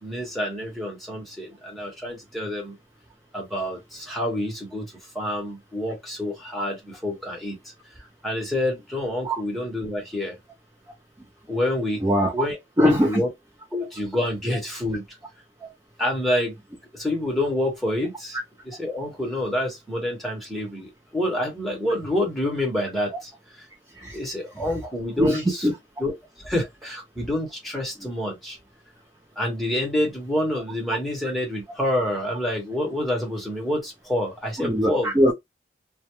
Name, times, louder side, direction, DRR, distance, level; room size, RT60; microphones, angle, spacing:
voice 1, 0.0-2.7 3.3-7.6 8.2-10.4 11.5-12.0 12.3-13.3 13.7-15.2 16.0-16.5 16.9-18.4 18.6-23.3 23.6-23.7 24.1-25.7 26.0-26.1 26.4-28.6 29.4-35.1, left 1 dB, ahead, 0.9 m, -27 dB
voice 2, 12.8-13.2 15.6-15.7 24.0-24.2 25.2-25.7 34.6-35.3, equal, 15° right, 0.4 m, -21 dB
2.3 x 2.1 x 2.8 m
head